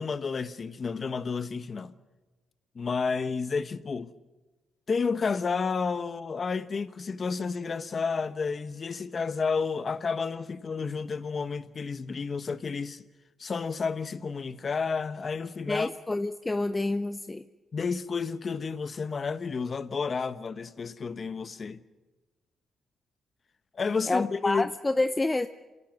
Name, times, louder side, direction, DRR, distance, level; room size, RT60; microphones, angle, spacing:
voice 1, 0.0-1.9 2.7-4.1 4.9-13.0 13.4-15.9 17.7-21.8 23.7-24.7, left 5 dB, 40° left, 1.1 m, -31 dB
voice 2, 15.7-17.4 24.1-25.5, left 2 dB, 20° left, 0.6 m, -28 dB
28.0 x 18.0 x 6.1 m
cardioid pair, 90°, 0 cm